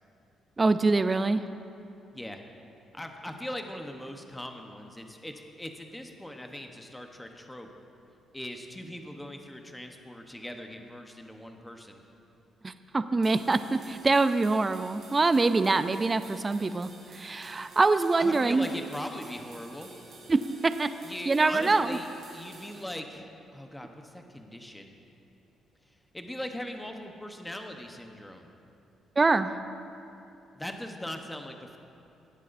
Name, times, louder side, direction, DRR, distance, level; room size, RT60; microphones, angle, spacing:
voice 1, 0.6-1.4 12.6-18.7 20.3-20.4 20.8-20.9 21.3-22.0 29.2-29.5, right 3 dB, 25° right, 11 dB, 0.4 m, -24 dB
voice 2, 2.9-7.7 8.3-12.0 18.2-19.9 21.0-23.3 23.5-24.9 25.9-28.5 30.5-31.8, left 1 dB, 10° left, 4 dB, 0.9 m, -40 dB
sound 1, 13.2-22.8, right 3 dB, 70° right, 2.3 m, -51 dB
17.5 x 8.1 x 2.6 m, 2.7 s
cardioid pair, 90°, 0 cm